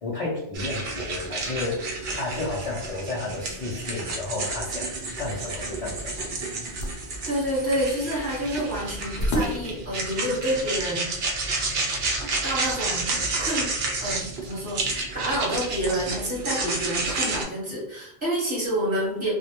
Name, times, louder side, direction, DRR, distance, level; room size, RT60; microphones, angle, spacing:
voice 1, 0.0-6.1, left 2 dB, 60° left, -6 dB, 0.3 m, -32 dB
sound 1, 0.5-17.4, right 3 dB, 65° right, 0.8 m, -30 dB
sound 2, 6.0-11.0, equal, 75° left, 0.8 m, -34 dB
voice 2, 7.2-11.1 12.4-13.7 14.0-19.3, equal, 10° right, -7 dB, 0.9 m, -28 dB
2.1 x 2.1 x 2.8 m, 0.71 s
omnidirectional pair, 1.2 m